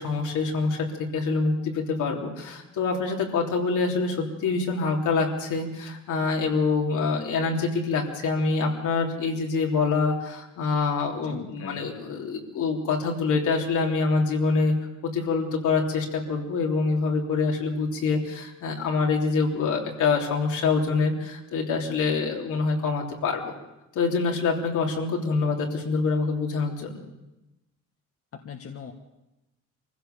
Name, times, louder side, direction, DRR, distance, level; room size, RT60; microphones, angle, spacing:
voice 1, 0.0-14.7 15.0-23.6 23.9-27.0, left 4 dB, 80° left, 0 dB, 3.5 m, -25 dB
voice 2, 11.2-11.8 28.3-28.9, left 7 dB, 50° left, 4 dB, 1.6 m, -39 dB
24.0 x 16.0 x 6.9 m, 0.97 s
cardioid pair, 90°, 30 cm